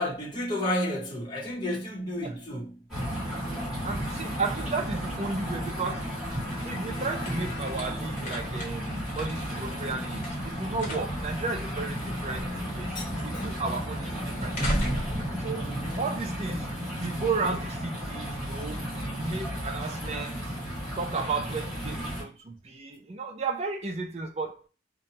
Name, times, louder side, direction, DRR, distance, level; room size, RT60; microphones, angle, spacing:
voice 1, 0.0-2.8 12.9-13.0 15.6-16.0, left 1 dB, 25° left, 0.9 m, -31 dB
sound 1, 2.9-22.2, equal, ahead, 1.6 m, -34 dB
voice 2, 3.8-6.2 6.6-14.7 15.4-18.9 19.2-20.6 21.0-24.6, right 4 dB, 40° right, 0.5 m, -34 dB
Bowed string instrument, 5.3-8.3, left 5 dB, 75° left, 0.6 m, -47 dB
sound 2, 6.0-16.6, equal, 45° left, 0.9 m, -38 dB
2.8 x 2.2 x 2.7 m
head